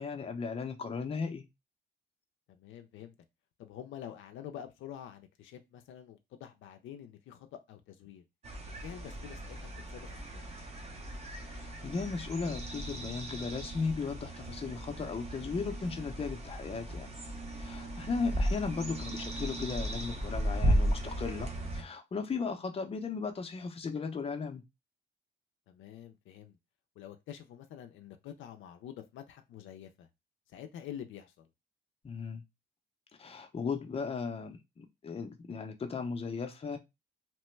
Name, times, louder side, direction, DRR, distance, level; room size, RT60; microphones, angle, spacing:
voice 1, 0.0-1.4 11.5-17.1 17.6-24.6 32.0-32.4 33.2-36.8, left 5 dB, 30° left, 0.6 m, -36 dB
voice 2, 2.5-3.1 3.6-8.2 8.8-9.6 9.9-10.5 25.7-26.6 27.0-30.1 30.5-31.5, left 10 dB, 80° left, 0.4 m, -47 dB
sound 1, 8.4-21.8, right 1 dB, 30° right, 0.8 m, -35 dB
2.9 x 2.1 x 3.1 m
cardioid pair, 90°, 20 cm